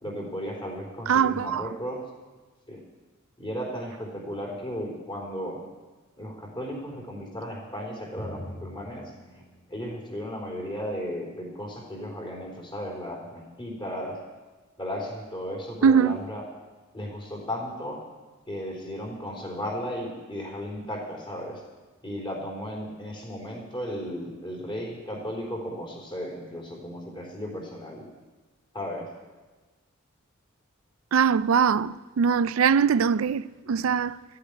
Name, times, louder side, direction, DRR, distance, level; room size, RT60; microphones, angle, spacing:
voice 1, 0.0-2.0 2.7-2.8 3.4-5.6 6.2-9.1 9.7-14.2 14.8-16.4 16.9-18.0 18.5-21.6 22.0-28.0 28.7-29.1, equal, 25° left, 3.7 m, -35 dB
voice 2, 1.1-1.7 15.8-16.2 31.1-34.2, right 6 dB, 75° right, 0.4 m, -22 dB
Drum, 8.2-11.7, equal, 70° left, 3.8 m, -44 dB
14.0 x 8.5 x 9.7 m
head